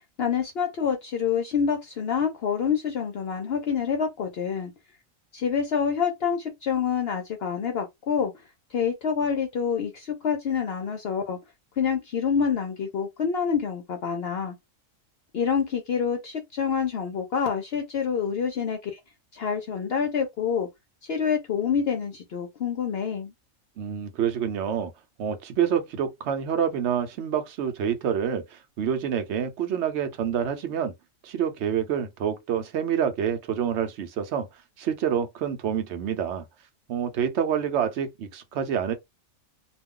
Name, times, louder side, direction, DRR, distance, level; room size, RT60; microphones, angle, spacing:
voice 1, 0.2-4.7 5.3-8.3 8.7-11.4 11.8-14.6 15.3-19.0 19.3-20.7 21.0-23.3, left 7 dB, 60° left, 0.7 m, -27 dB
voice 2, 23.8-24.9 25.2-30.9 31.2-34.5 34.8-36.4 36.9-38.9, right 8 dB, 65° right, 0.9 m, -27 dB
2.4 x 2.2 x 3.6 m
omnidirectional pair, 1.3 m